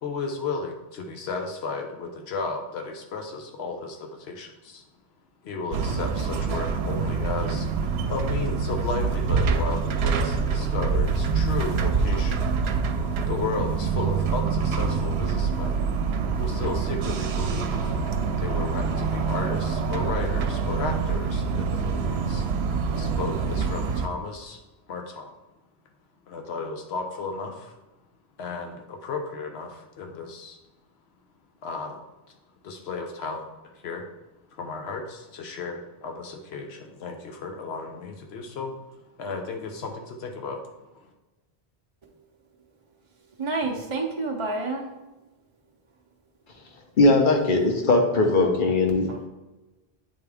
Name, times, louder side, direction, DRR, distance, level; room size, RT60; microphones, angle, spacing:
voice 1, 0.0-4.8 5.4-7.7 8.1-12.4 13.3-15.9 16.4-17.9 18.4-22.4 22.9-24.6 24.9-25.3 26.3-27.7 28.4-30.6 31.6-32.0 32.6-33.5 33.7-34.0 34.6-38.8 39.2-40.7 40.9-41.1, left 4 dB, 90° left, 3 dB, 1.0 m, -34 dB
sound 1, 5.7-24.1, right 5 dB, 80° right, 0.8 m, -26 dB
voice 2, 43.4-44.9 48.1-48.7 49.1-49.3, right 3 dB, 35° right, 0 dB, 0.5 m, -30 dB
voice 3, 47.0-49.3, left 2 dB, 55° left, 3 dB, 1.0 m, -20 dB
8.5 x 3.5 x 3.4 m, 1.1 s
omnidirectional pair, 1.0 m